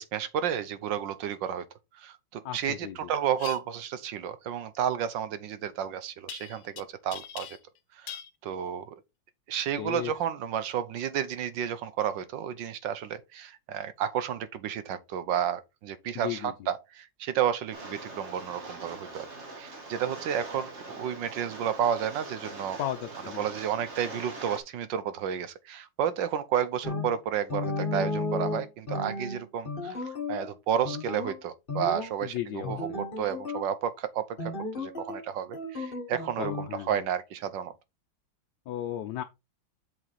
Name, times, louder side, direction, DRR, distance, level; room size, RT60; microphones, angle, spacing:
voice 1, 0.0-1.6 2.0-7.6 8.0-9.0 9.5-19.3 19.6-22.8 23.4-34.5 34.8-37.7, right 9 dB, 70° right, 1.5 m, -31 dB
voice 2, 2.4-3.1 9.8-10.1 16.1-16.5 22.8-23.5 32.2-33.0 36.4-37.1 38.7-39.2, left 12 dB, 70° left, 1.3 m, -35 dB
sound 1, 3.4-3.6 6.3-6.8 7.1-7.8 8.1-8.3, left 10 dB, 90° left, 1.6 m, -41 dB
Rain, 17.7-24.6, right 2 dB, 40° right, 1.6 m, -42 dB
sound 2, 26.8-27.1 27.5-30.5 30.8-31.4 31.7-32.1 32.6-33.7 34.4-35.2 35.5-36.7, left 3 dB, 30° left, 1.4 m, -34 dB
7.6 x 4.9 x 4.1 m
omnidirectional pair, 2.1 m